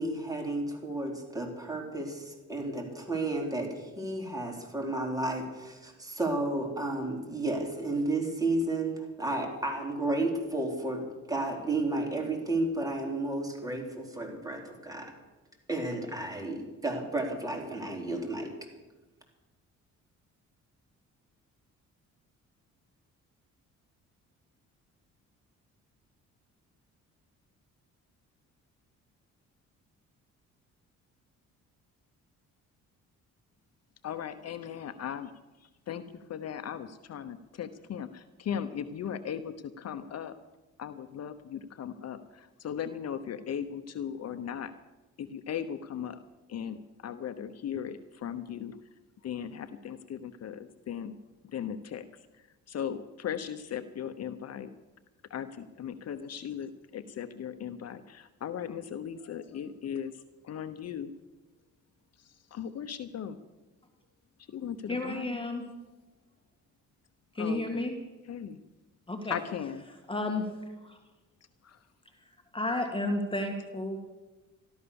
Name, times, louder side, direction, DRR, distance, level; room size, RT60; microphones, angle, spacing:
voice 1, 0.0-15.1 15.7-18.5, right 2 dB, 10° right, 1 dB, 4.1 m, -32 dB
voice 2, 34.0-35.3 35.6-40.3 40.8-44.7 45.2-46.2 46.5-48.8 49.2-51.1 51.5-52.2 52.7-54.7 55.3-61.1 62.2-63.4 64.5-65.3 67.4-67.8 68.3-68.6 69.3-69.8 71.6-71.8, left 8 dB, 55° left, 11 dB, 0.9 m, -38 dB
voice 3, 64.9-65.7 67.3-68.0 69.1-69.4 70.1-70.5 70.8-71.0 72.5-74.0, left 2 dB, 15° left, 4 dB, 2.1 m, -32 dB
14.0 x 12.5 x 7.0 m, 1.1 s
cardioid pair, 90°, 30 cm